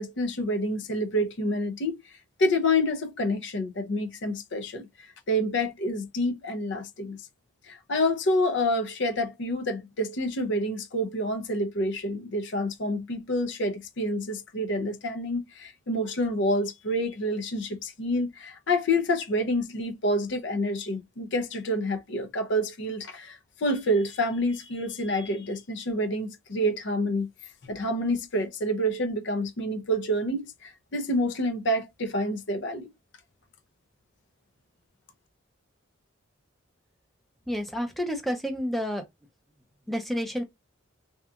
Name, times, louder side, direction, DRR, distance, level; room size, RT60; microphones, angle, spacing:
voice 1, 0.0-2.0 2.4-7.2 7.7-27.3 27.6-32.9, left 1 dB, 60° left, 0.6 m, -28 dB
voice 2, 37.5-39.1 39.9-40.4, equal, ahead, 0.5 m, -29 dB
2.8 x 2.3 x 2.3 m
head